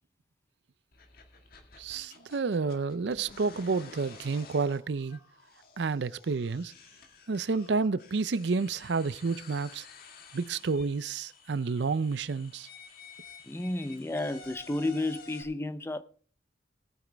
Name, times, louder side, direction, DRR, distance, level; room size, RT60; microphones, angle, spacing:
sound 1, 0.9-15.4, left 4 dB, 50° left, 1.9 m, -52 dB
voice 1, 1.8-5.2 5.8-6.7 7.3-9.8 10.3-12.7, right 4 dB, 65° right, 0.5 m, -30 dB
voice 2, 13.4-16.0, left 2 dB, 15° left, 0.6 m, -32 dB
19.0 x 9.0 x 3.4 m
head